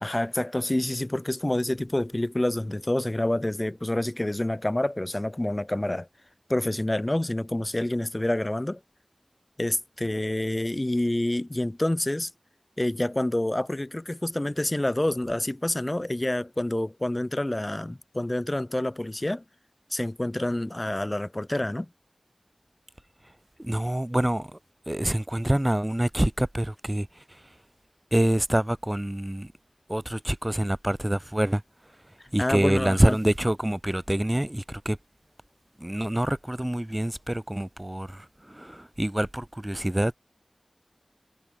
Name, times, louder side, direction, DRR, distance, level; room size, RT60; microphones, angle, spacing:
voice 1, 0.0-6.1 6.5-8.8 9.6-12.3 12.8-19.4 19.9-21.9 32.4-33.2, left 1 dB, 30° left, 2.8 m, -27 dB
voice 2, 23.6-24.6 24.9-27.2 28.1-29.5 29.9-31.6 32.3-35.0 35.8-40.2, right 1 dB, 20° right, 0.9 m, -26 dB
wide cardioid pair, 55°, 0 cm